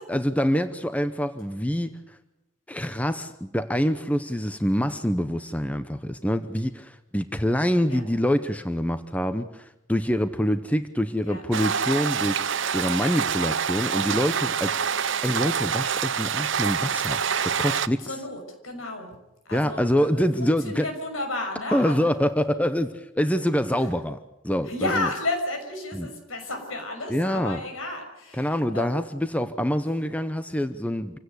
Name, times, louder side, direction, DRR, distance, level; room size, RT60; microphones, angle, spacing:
voice 1, 0.1-2.2 2.7-18.2 19.5-20.9 21.7-24.2 24.4-25.1 25.9-26.1 27.1-27.6 28.3-31.2, equal, 5° left, 10 dB, 0.8 m, -26 dB
sound 1, 11.5-17.9, right 7 dB, 60° right, 0.8 m, -26 dB
voice 2, 18.1-19.1 19.5-22.1 23.7-23.9 24.7-28.9, left 2 dB, 75° left, 4 dB, 6.3 m, -32 dB
26.5 x 16.5 x 8.1 m, 0.93 s
head